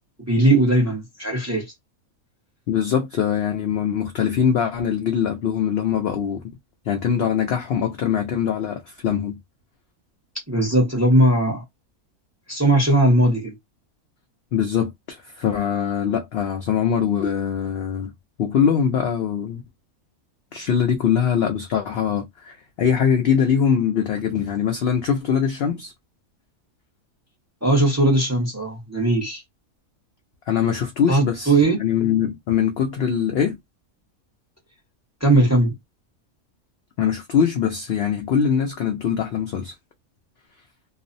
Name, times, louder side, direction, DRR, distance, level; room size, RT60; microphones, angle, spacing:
voice 1, 0.3-1.7 10.5-11.6 12.5-13.5 27.6-29.4 31.1-31.8 35.2-35.7, right 1 dB, 15° right, 0.8 m, -18 dB
voice 2, 2.7-6.4 6.9-9.4 14.5-18.1 18.4-19.6 20.5-25.9 30.5-33.6 37.0-39.7, left 8 dB, 70° left, 0.6 m, -22 dB
2.4 x 2.0 x 2.5 m
omnidirectional pair, 1.5 m